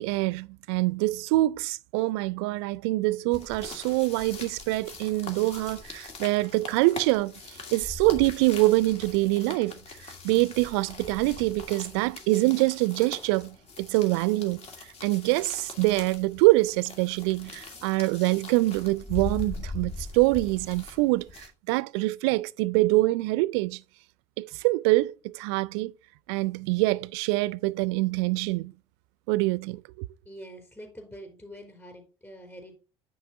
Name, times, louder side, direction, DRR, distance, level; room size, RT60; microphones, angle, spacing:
voice 1, 0.0-9.7 10.2-14.7 15.0-23.8 24.4-25.9 26.3-28.7 29.3-30.1, right 20 dB, 65° right, 0.4 m, -25 dB
sound 1, 3.3-21.5, left 3 dB, 45° left, 1.8 m, -42 dB
voice 2, 30.2-32.7, equal, 15° left, 3.4 m, -45 dB
9.3 x 4.0 x 4.0 m
figure-of-eight pair, 55°, 15 cm